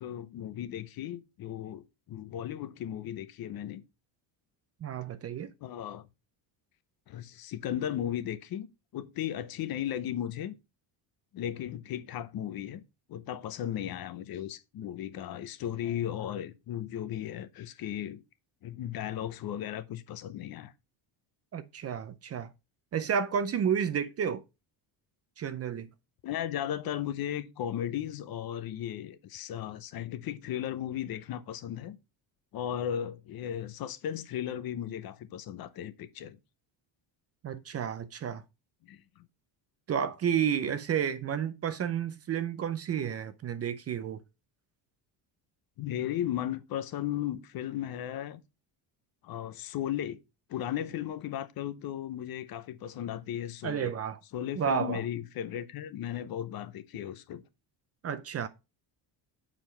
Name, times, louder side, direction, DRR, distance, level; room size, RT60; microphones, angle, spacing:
voice 1, 0.0-3.8 5.6-6.1 7.1-8.7 8.9-10.5 11.3-12.8 13.1-18.2 18.6-20.7 26.2-32.0 32.5-36.4 38.8-39.3 40.6-40.7 45.8-48.4 49.2-50.2 50.5-53.9 54.3-57.4, left 11 dB, 50° left, 0.7 m, -36 dB
voice 2, 4.8-5.5 21.5-22.5 22.9-24.4 25.4-25.9 37.4-38.4 39.9-44.2 53.6-54.2 54.6-55.0 58.0-58.5, right 8 dB, 35° right, 0.5 m, -31 dB
7.5 x 4.9 x 4.3 m
cardioid pair, 165°, 46 cm